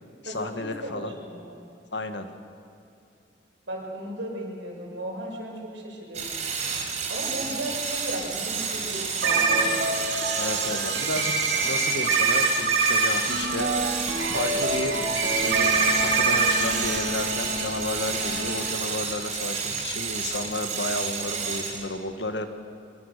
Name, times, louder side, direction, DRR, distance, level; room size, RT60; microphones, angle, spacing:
voice 1, 0.2-1.1 1.9-2.3 10.3-11.3 11.6-13.7 14.3-15.0 15.4-15.7 16.0-22.5, left 2 dB, 70° left, 8 dB, 1.7 m, -32 dB
voice 2, 0.8-1.4 3.7-6.4 7.1-9.9, right 1 dB, 85° right, -1 dB, 6.3 m, -35 dB
sound 1, 6.1-21.9, right 5 dB, 40° right, 4.4 m, -31 dB
sound 2, 9.2-18.6, right 3 dB, 70° right, 3.4 m, -25 dB
24.5 x 23.0 x 6.8 m, 2.6 s
head